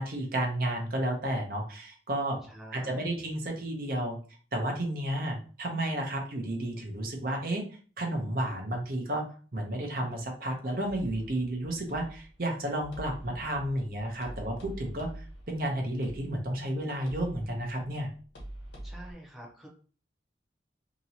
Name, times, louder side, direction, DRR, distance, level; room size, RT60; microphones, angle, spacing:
voice 1, 0.0-2.4 2.7-4.2 4.5-7.7 8.0-9.3 9.5-18.1, right 1 dB, 55° right, 2 dB, 0.7 m, -32 dB
voice 2, 2.5-3.2 18.8-19.7, right 1 dB, ahead, -3 dB, 0.7 m, -47 dB
sound 1, 10.9-19.1, right 1 dB, 85° left, 1.0 m, -46 dB
2.9 x 2.9 x 2.7 m, 0.39 s
head